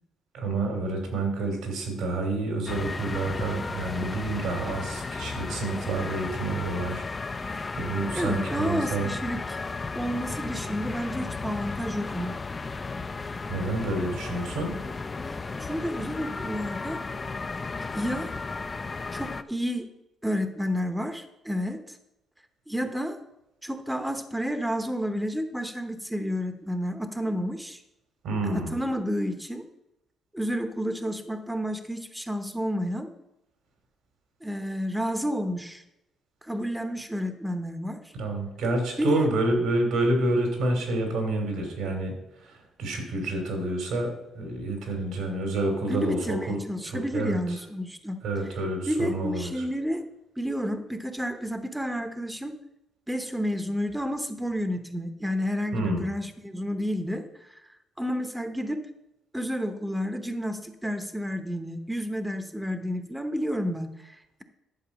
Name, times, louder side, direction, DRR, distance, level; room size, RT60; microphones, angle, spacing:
voice 1, 0.3-9.1 13.5-14.7 28.2-28.8 38.2-46.6 46.8-47.6 48.2-49.6 55.7-56.0, right 2 dB, 85° right, 3 dB, 3.0 m, -29 dB
sound 1, 2.7-19.4, left 4 dB, 30° left, 0.5 m, -34 dB
voice 2, 8.1-9.6 9.9-12.3 15.3-17.0 17.9-18.3 19.1-19.9 20.2-22.0 22.7-23.2 23.6-27.8 28.4-29.7 30.3-33.1 34.4-35.8 36.4-38.1 39.0-39.3 45.8-48.2 48.9-50.0 50.4-52.6 53.1-57.5 58.0-58.9 59.3-64.4, equal, 5° right, 7 dB, 0.9 m, -30 dB
11.0 x 4.6 x 7.3 m, 0.89 s
cardioid pair, 90°, 0 cm